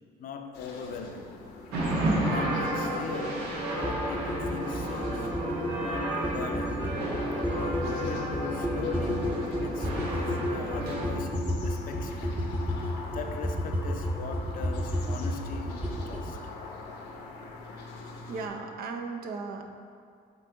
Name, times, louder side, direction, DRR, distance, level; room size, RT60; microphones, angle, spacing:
voice 1, 0.2-1.5 2.1-5.3 5.8-7.0 7.6-12.5 13.1-16.4, left 5 dB, 55° left, 0.5 m, -40 dB
sound 1, 0.5-18.5, left 3 dB, 85° left, 0.9 m, -46 dB
sound 2, 1.7-11.1, right 1 dB, 85° right, 1.2 m, -31 dB
sound 3, 3.8-16.3, equal, 10° right, 0.7 m, -32 dB
voice 2, 18.3-19.6, right 4 dB, 60° right, 0.6 m, -36 dB
7.3 x 3.8 x 3.7 m
cardioid pair, 110°, 17 cm